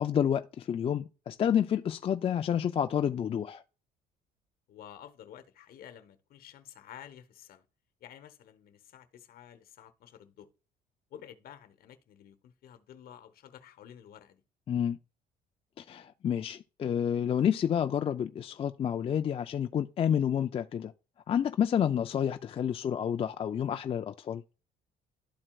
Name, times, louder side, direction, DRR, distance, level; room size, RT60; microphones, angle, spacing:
voice 1, 0.0-3.6 14.7-15.0 15.8-20.9 21.3-24.4, left 9 dB, 35° left, 0.4 m, -29 dB
voice 2, 4.7-7.7 8.0-10.5 11.1-14.4, left 10 dB, 60° left, 1.0 m, -51 dB
12.0 x 4.4 x 2.3 m
cardioid pair, 110°, 17 cm